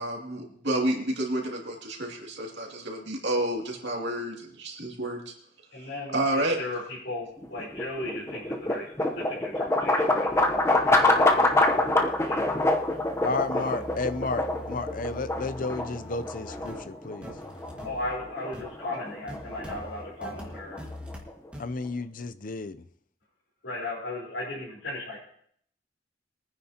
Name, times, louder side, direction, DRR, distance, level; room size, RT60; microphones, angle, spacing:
voice 1, 0.0-5.3 5.7-6.6, right 1 dB, 65° right, -1 dB, 2.6 m, -30 dB
voice 2, 5.7-6.8 7.0-8.9 9.1-10.3 10.7-12.6 13.5-13.7 17.8-20.8 23.6-25.2, left 2 dB, 85° left, -9 dB, 4.2 m, -36 dB
sound 1, 7.4-21.5, left 2 dB, 15° left, 0.9 m, -26 dB
sound 2, 10.3-21.2 21.5-21.6, equal, 5° right, 1.8 m, -44 dB
voice 3, 13.2-17.3 21.6-22.8, left 3 dB, 45° left, 12 dB, 0.6 m, -32 dB
22.5 x 9.8 x 2.9 m, 0.64 s
head